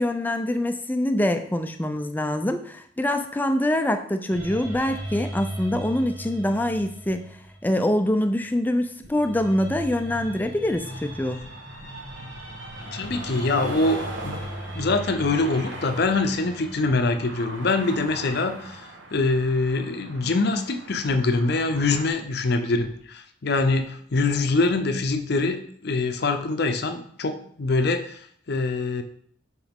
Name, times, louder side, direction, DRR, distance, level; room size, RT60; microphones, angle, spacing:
voice 1, 0.0-7.3 7.6-11.4, left 1 dB, 10° left, 7 dB, 0.4 m, -24 dB
sound 1, 4.3-8.5 9.0-19.1 21.1-23.0, right 1 dB, 90° right, 2.0 m, -39 dB
sound 2, 10.8-22.1, right 1 dB, 70° right, 1.1 m, -40 dB
voice 2, 12.9-14.4 14.7-18.8 19.1-29.0, left 3 dB, 55° left, 8 dB, 0.6 m, -24 dB
7.0 x 4.1 x 3.6 m, 0.64 s
head